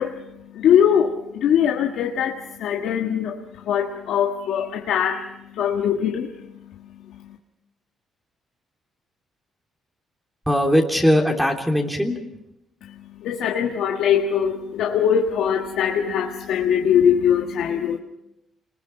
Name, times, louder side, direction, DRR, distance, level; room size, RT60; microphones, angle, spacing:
voice 1, 0.0-7.4 12.8-18.0, left 8 dB, 80° left, 2 dB, 1.5 m, -22 dB
voice 2, 10.5-12.2, equal, 5° right, 2 dB, 3.1 m, -19 dB
27.5 x 20.5 x 5.9 m, 0.85 s
cardioid pair, 90°, 0 cm